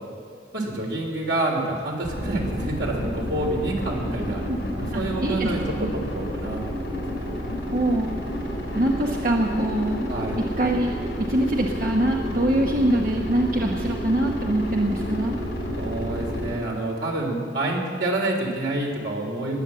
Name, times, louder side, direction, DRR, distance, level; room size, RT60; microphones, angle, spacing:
voice 1, 0.5-4.4 4.8-7.5 10.1-10.4 15.8-19.6, right 1 dB, 85° right, 0 dB, 3.3 m, -28 dB
sound 1, 2.0-16.5, equal, 70° left, 4.2 m, -30 dB
voice 2, 4.9-5.5 5.8-5.9 7.7-8.1 8.7-10.0 10.6-10.9 11.3-15.4, right 1 dB, 50° right, 1 dB, 1.0 m, -23 dB
20.0 x 9.0 x 7.5 m, 2.1 s
head